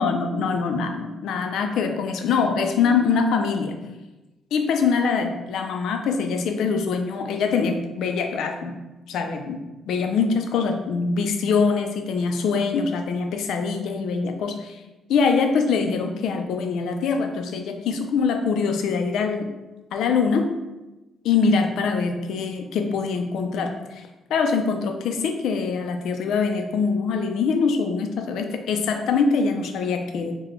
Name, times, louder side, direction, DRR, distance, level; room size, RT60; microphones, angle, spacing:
voice 1, 0.0-3.8 4.5-8.8 9.1-9.6 9.9-14.8 15.1-19.5 19.9-20.5 21.2-24.0 24.3-30.3, left 5 dB, 80° left, 5 dB, 0.4 m, -23 dB
4.0 x 2.2 x 3.1 m, 1.1 s
cardioid pair, 90°, 0 cm